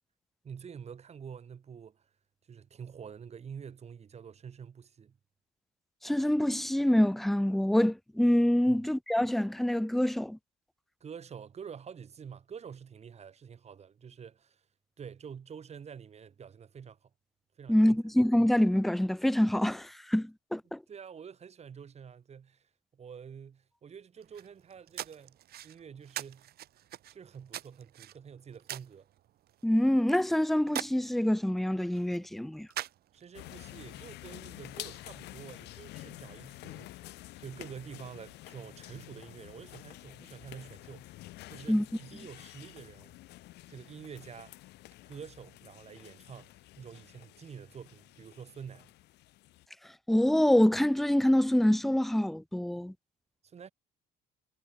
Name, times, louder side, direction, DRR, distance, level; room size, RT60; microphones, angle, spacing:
voice 1, 0.4-2.1 2.5-5.2 8.7-8.8 11.0-14.6 15.0-17.1 17.6-18.0 20.9-25.4 25.6-26.5 27.1-29.1 33.1-37.1 37.4-41.2 41.5-43.1 43.7-44.6 45.1-48.9 53.4-53.7, right 7 dB, 40° right, 5.0 m, -47 dB
voice 2, 6.0-10.4 17.7-20.8 29.6-32.7 41.7-41.8 50.1-52.9, left 1 dB, ahead, 0.4 m, -26 dB
sound 1, 24.2-33.5, right 13 dB, 65° right, 6.1 m, -45 dB
sound 2, 33.3-49.7, left 18 dB, 85° left, 2.9 m, -49 dB
cardioid pair, 110°, 17 cm